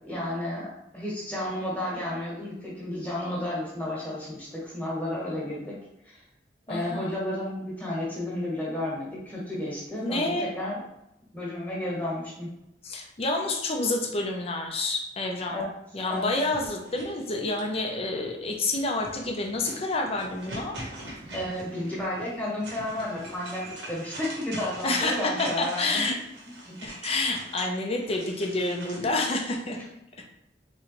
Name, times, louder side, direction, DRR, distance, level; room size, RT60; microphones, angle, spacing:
voice 1, 0.0-5.8 6.0-6.2 6.7-10.8 11.3-12.5 15.5-15.6 16.1-16.3 21.3-26.0 26.4-26.8 29.7-29.8, left 1 dB, 10° left, -6 dB, 1.3 m, -32 dB
voice 2, 6.7-7.1 10.0-10.5 12.8-15.6 15.9-20.7 24.8-26.2 26.8-29.8, left 2 dB, 35° left, 2 dB, 0.6 m, -28 dB
sound 1, 16.2-17.9 18.7-29.1, right 1 dB, 80° right, 1.1 m, -43 dB
3.7 x 3.1 x 3.0 m, 0.84 s
head